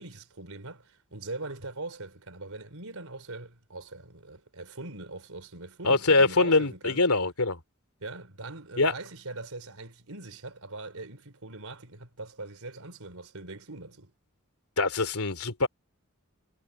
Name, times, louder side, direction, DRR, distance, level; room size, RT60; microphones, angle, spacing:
voice 1, 0.0-7.1 8.0-14.1, right 2 dB, 75° right, 4.0 m, -41 dB
voice 2, 5.8-7.6 8.8-8.9 14.8-15.7, left 3 dB, 85° left, 2.9 m, -23 dB
head